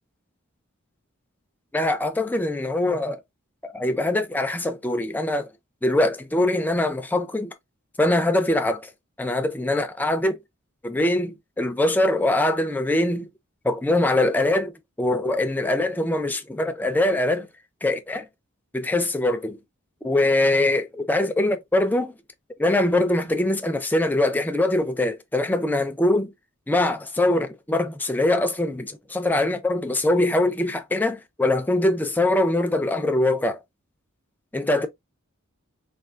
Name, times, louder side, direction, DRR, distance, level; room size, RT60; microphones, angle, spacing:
voice 1, 1.7-3.2 3.6-5.5 5.8-7.5 8.0-8.9 9.2-10.4 10.8-13.3 13.6-14.7 15.0-17.5 17.8-18.3 18.7-19.6 20.0-22.1 22.6-26.3 26.7-33.6 34.5-34.9, left 1 dB, 10° left, 0.4 m, -23 dB
3.4 x 2.4 x 2.5 m
head